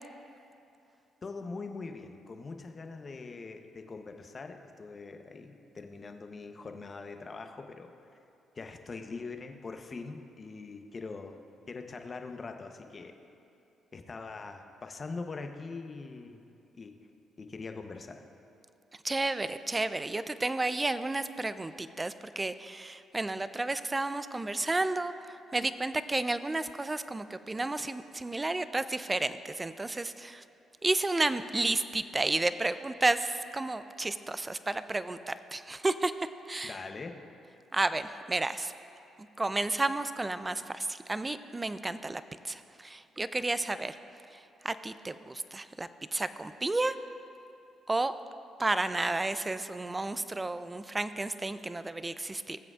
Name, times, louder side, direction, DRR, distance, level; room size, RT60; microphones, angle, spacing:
voice 1, 1.2-7.9 8.5-11.4 11.7-13.2 13.9-16.4 16.7-17.0 17.4-18.2 36.6-37.2, left 4 dB, 40° left, 6 dB, 0.8 m, -42 dB
voice 2, 19.0-30.4 30.8-36.8 37.7-38.7 39.4-44.0 44.3-46.9 47.9-48.2 48.6-52.6, right 2 dB, 20° right, 12 dB, 0.4 m, -32 dB
19.0 x 7.6 x 2.4 m, 2.7 s
supercardioid pair, 70°, 0 cm